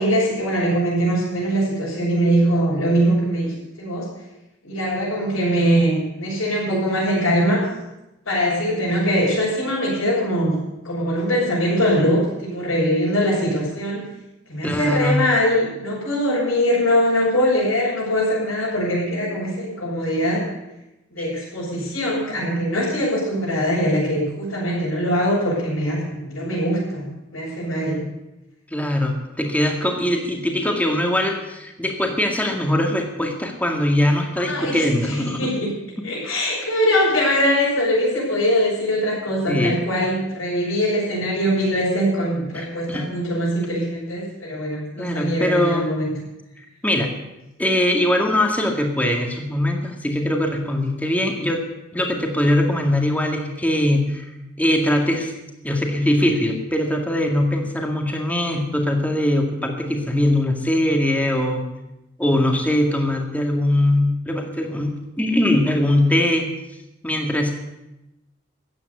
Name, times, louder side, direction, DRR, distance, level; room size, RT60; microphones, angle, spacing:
voice 1, 0.0-3.5 3.8-4.1 4.6-7.6 8.2-10.6 10.8-14.1 14.5-20.4 21.1-27.0 27.3-28.0 34.4-35.7 36.0-46.1, equal, 90° left, -8 dB, 6.8 m, -22 dB
voice 2, 14.6-15.3 21.2-21.3 28.7-35.5 39.5-39.8 42.5-43.1 45.0-45.9 46.8-47.1 47.6-51.6 51.9-54.3 54.6-55.3 55.6-61.6 62.2-66.5 67.0-67.5, left 1 dB, 10° left, 2 dB, 2.0 m, -21 dB
14.5 x 9.3 x 8.4 m, 0.95 s
head